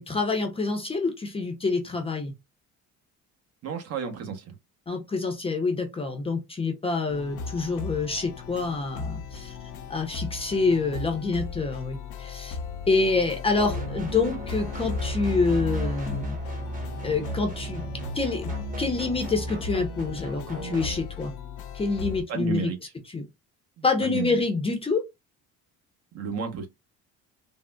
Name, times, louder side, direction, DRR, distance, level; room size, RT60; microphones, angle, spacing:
voice 1, 0.0-2.3 4.9-9.6 9.9-12.6 12.9-16.4 17.0-17.8 18.1-18.5 18.8-21.3 21.7-22.7 23.1-23.3 23.8-25.0, left 3 dB, 20° left, 0.6 m, -27 dB
voice 2, 3.6-4.5 22.3-22.8 23.8-24.4 26.1-26.7, right 6 dB, 50° right, 0.9 m, -32 dB
sound 1, 7.1-22.2, left 5 dB, 70° left, 0.7 m, -37 dB
sound 2, 13.5-21.0, equal, 25° right, 1.0 m, -34 dB
3.7 x 2.0 x 2.2 m
cardioid pair, 140°, 31 cm